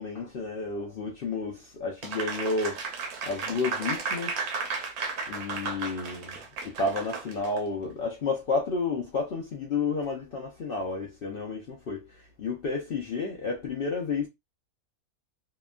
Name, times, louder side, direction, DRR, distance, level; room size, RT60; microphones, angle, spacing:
voice 1, 0.0-2.8 3.2-4.4 5.3-6.4 6.6-12.1 12.4-14.3, left 4 dB, 70° left, 0.5 m, -31 dB
Applause, 2.0-7.6, right 5 dB, 75° right, 1.1 m, -34 dB
2.9 x 2.2 x 2.3 m
omnidirectional pair, 1.6 m